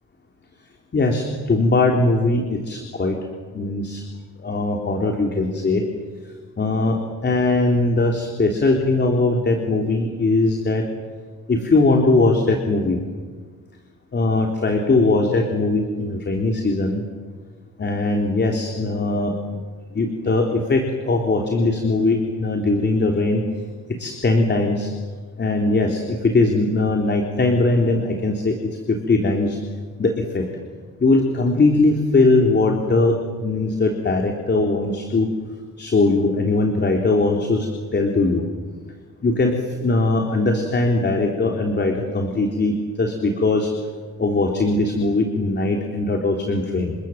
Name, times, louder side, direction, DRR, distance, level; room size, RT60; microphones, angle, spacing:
voice 1, 0.9-3.2 3.5-4.0 4.4-5.8 6.6-10.8 11.5-13.0 14.1-17.0 17.8-19.4 19.9-23.4 23.9-24.9 25.4-29.6 30.0-30.5 31.0-35.3 35.8-38.4 39.2-43.7 44.2-47.0, left 2 dB, 35° left, 2 dB, 3.7 m, -20 dB
29.5 x 25.5 x 7.5 m, 1.5 s
cardioid pair, 90°, 30 cm